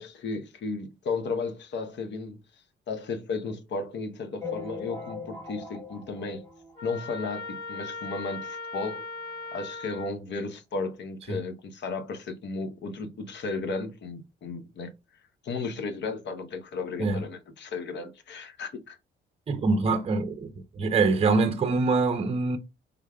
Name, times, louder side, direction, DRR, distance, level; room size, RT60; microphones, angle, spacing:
voice 1, 0.0-2.4 2.9-6.4 6.8-9.0 9.5-14.9 15.4-19.0, left 4 dB, 65° left, 0.8 m, -34 dB
sound 1, 4.4-7.3 7.7-7.8 8.0-8.2 8.5-8.6 9.4-9.5 10.0-10.1, left 4 dB, 15° left, 1.2 m, -40 dB
Trumpet, 6.8-10.1, left 3 dB, 85° left, 2.3 m, -38 dB
voice 2, 19.5-20.5 20.8-22.6, right 3 dB, 30° right, 0.6 m, -24 dB
3.6 x 3.4 x 2.2 m
cardioid pair, 90°, 20 cm